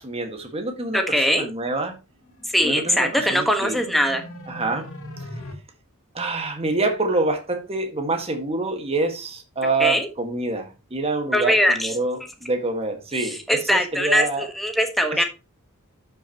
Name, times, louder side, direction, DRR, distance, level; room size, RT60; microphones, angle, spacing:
voice 1, 0.0-1.9 2.6-3.8 4.5-4.9 6.1-14.5 15.1-15.2, right 2 dB, 25° right, 1.7 m, -26 dB
voice 2, 0.9-1.4 2.5-4.2 9.8-10.1 11.3-11.9 13.2-15.2, equal, ahead, 1.4 m, -21 dB
sound 1, 2.2-5.5, left 1 dB, 65° left, 3.3 m, -40 dB
12.5 x 6.4 x 3.0 m
head